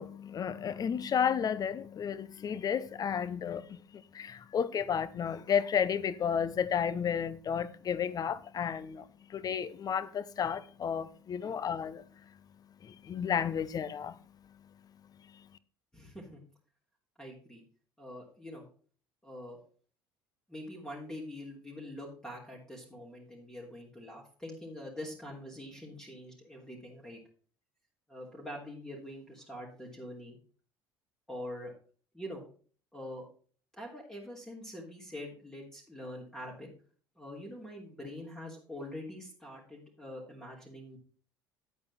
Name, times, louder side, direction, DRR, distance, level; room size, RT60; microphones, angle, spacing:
voice 1, 0.0-9.0 9.3-12.0 12.8-14.2, left 7 dB, 35° left, 0.9 m, -32 dB
voice 2, 15.9-16.4 17.2-17.6 18.0-18.6 19.2-19.6 20.5-27.2 28.1-30.4 31.3-31.7 32.1-32.4 32.9-33.3 33.8-36.7 37.2-41.0, left 1 dB, 5° left, 3.6 m, -44 dB
9.7 x 8.7 x 4.3 m
figure-of-eight pair, 60°, 11 cm